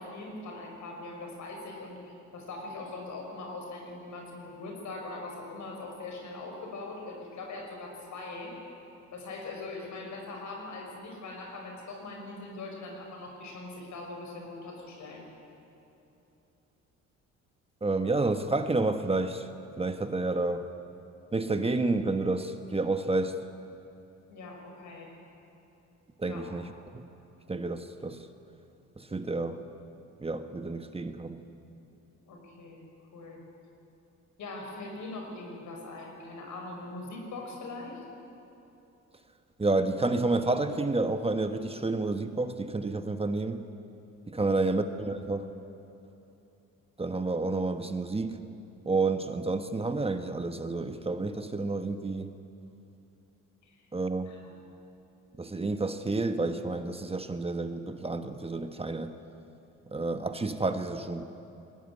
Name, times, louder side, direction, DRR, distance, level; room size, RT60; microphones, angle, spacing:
voice 1, 0.0-8.6 9.1-15.3 24.3-25.1 26.2-26.5 32.3-33.4 34.4-38.1 44.4-44.5 53.6-53.8 54.3-54.6, left 2 dB, 70° left, 2 dB, 6.0 m, -41 dB
voice 2, 17.8-19.5 19.8-20.7 21.3-23.4 26.2-27.0 27.5-28.3 29.0-29.6 30.2-31.4 39.6-43.6 44.3-45.5 47.0-48.4 48.8-52.3 53.9-54.3 55.4-59.1 59.9-61.2, right 3 dB, 20° right, 8 dB, 1.3 m, -30 dB
22.0 x 18.5 x 9.6 m, 3.0 s
cardioid pair, 90°, 30 cm